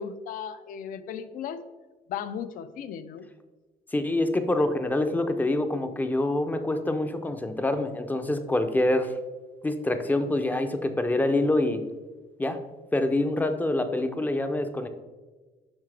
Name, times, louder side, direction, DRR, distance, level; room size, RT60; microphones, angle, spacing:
voice 1, 0.0-1.6 2.1-3.3, left 8 dB, 65° left, 12 dB, 0.5 m, -36 dB
voice 2, 3.9-9.1 9.6-11.8 12.4-12.6 12.9-14.9, left 2 dB, 10° left, 8 dB, 0.5 m, -26 dB
7.3 x 5.7 x 3.3 m, 1.2 s
cardioid pair, 140°, 15 cm